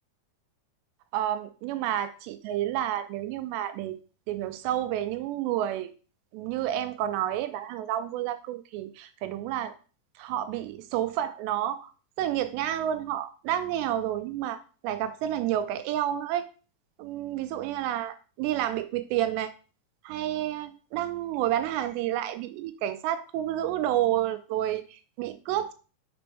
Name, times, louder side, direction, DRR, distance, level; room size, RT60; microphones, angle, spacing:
voice 1, 1.1-3.9 4.3-5.9 6.3-9.7 10.2-11.9 12.2-16.5 17.0-19.5 20.1-25.7, right 12 dB, 85° right, 10 dB, 2.6 m, -30 dB
6.0 x 4.2 x 4.7 m, 0.36 s
omnidirectional pair, 5.0 m